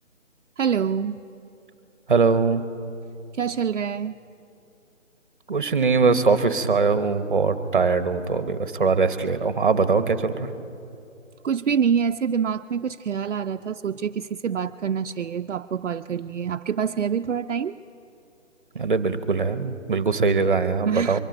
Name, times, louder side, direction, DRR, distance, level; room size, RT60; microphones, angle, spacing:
voice 1, 0.6-1.2 3.3-4.2 11.4-17.8 20.9-21.2, right 7 dB, 70° right, 7 dB, 0.5 m, -26 dB
voice 2, 2.1-2.6 5.5-10.5 18.7-21.2, right 4 dB, 40° right, 11 dB, 0.9 m, -21 dB
23.5 x 10.5 x 5.2 m, 2.7 s
hypercardioid pair, 180°, 38 cm